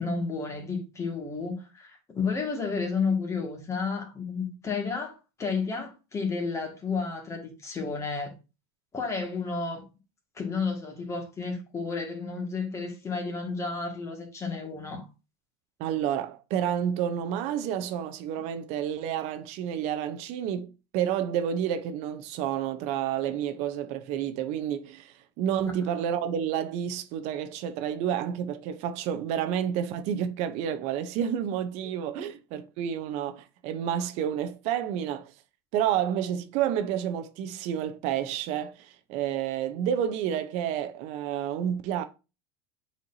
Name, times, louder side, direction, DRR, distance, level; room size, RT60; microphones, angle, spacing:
voice 1, 0.0-8.3 8.9-9.8 10.4-15.1, left 4 dB, 20° left, 1.8 m, -31 dB
voice 2, 15.8-35.3 35.7-42.0, right 9 dB, 55° right, 0.7 m, -30 dB
7.8 x 4.5 x 2.7 m
supercardioid pair, 130°, 13 cm